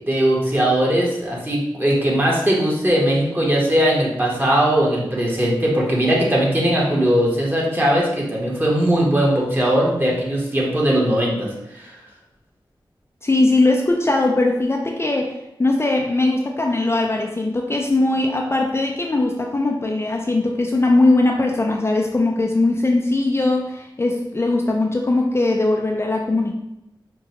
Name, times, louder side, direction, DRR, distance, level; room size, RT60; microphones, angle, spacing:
voice 1, 0.0-11.9, right 1 dB, 25° right, -4 dB, 1.1 m, -19 dB
voice 2, 13.2-15.3 15.6-26.5, left 2 dB, 30° left, 0 dB, 0.4 m, -20 dB
4.7 x 2.2 x 2.8 m, 0.87 s
cardioid pair, 50°, 9 cm